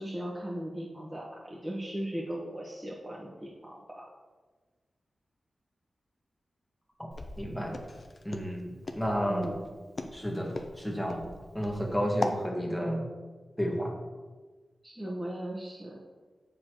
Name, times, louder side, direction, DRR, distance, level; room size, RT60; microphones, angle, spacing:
voice 1, 0.0-4.1 9.3-9.7 14.8-16.0, right 1 dB, 20° right, -5 dB, 1.3 m, -37 dB
Walk footsteps, 7.1-12.4, left 2 dB, 55° left, 0.7 m, -38 dB
voice 2, 7.4-7.8 8.2-9.5 10.1-11.3 11.5-13.1 13.6-13.9, equal, 5° left, 0 dB, 1.5 m, -31 dB
7.4 x 6.7 x 3.0 m, 1.4 s
cardioid pair, 50°, 0 cm